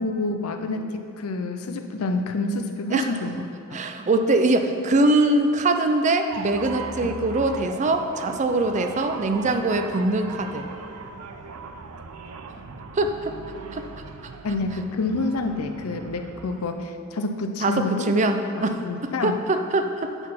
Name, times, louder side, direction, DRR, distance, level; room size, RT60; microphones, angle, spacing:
voice 1, 0.0-3.8 7.0-7.1 14.4-18.1 18.6-19.4, left 3 dB, 80° left, 6 dB, 0.6 m, -28 dB
voice 2, 3.7-10.7 12.9-13.4 13.7-13.8 17.6-20.1, right 2 dB, 35° right, 7 dB, 0.4 m, -23 dB
sound 1, 6.3-16.7, right 4 dB, 85° right, 0.5 m, -39 dB
8.9 x 4.1 x 5.7 m, 2.6 s
head